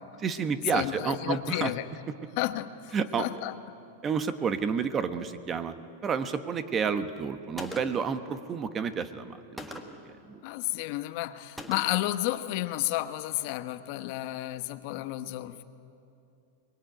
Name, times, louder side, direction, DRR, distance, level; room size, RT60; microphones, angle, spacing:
voice 1, 0.2-1.7 2.9-3.3 4.0-5.7 6.0-9.7 10.3-10.4, right 6 dB, 20° right, 11 dB, 1.1 m, -30 dB
voice 2, 0.7-1.9 2.4-3.6 10.4-15.6, left 16 dB, 50° left, 10 dB, 1.1 m, -32 dB
Gunshot gunfire, 7.6-8.2 9.6-10.1 11.6-12.1, equal, ahead, 1.7 m, -41 dB
23.0 x 21.5 x 9.1 m, 2.7 s
supercardioid pair, 140°, 0 cm